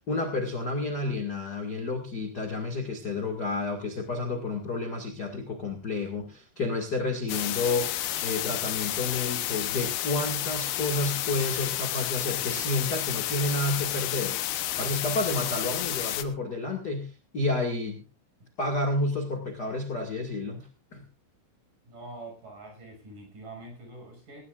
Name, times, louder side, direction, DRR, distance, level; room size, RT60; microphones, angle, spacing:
voice 1, 0.0-14.4 14.8-18.0 18.6-21.0, left 2 dB, 40° left, 2 dB, 1.4 m, -30 dB
sound 1, 7.3-16.2, left 13 dB, 70° left, 2.5 m, -31 dB
voice 2, 21.9-24.4, right 2 dB, 45° right, 3 dB, 7.6 m, -44 dB
20.0 x 17.5 x 2.5 m, 0.33 s
omnidirectional pair, 5.4 m